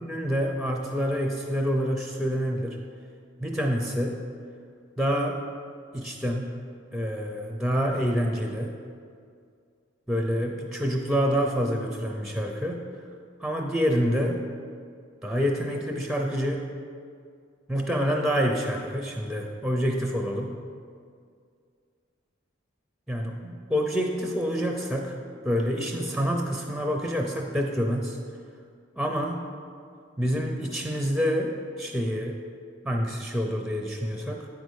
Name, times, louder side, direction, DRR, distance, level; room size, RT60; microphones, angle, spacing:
voice 1, 0.0-2.8 3.4-4.2 5.0-5.4 5.9-6.6 6.9-8.8 10.1-12.9 13.4-14.4 15.2-16.7 17.7-20.6 23.1-25.2 25.4-28.2 29.0-29.4 30.2-32.4 32.8-34.5, equal, ahead, 1 dB, 0.5 m, -27 dB
8.7 x 5.3 x 6.3 m, 2.2 s
head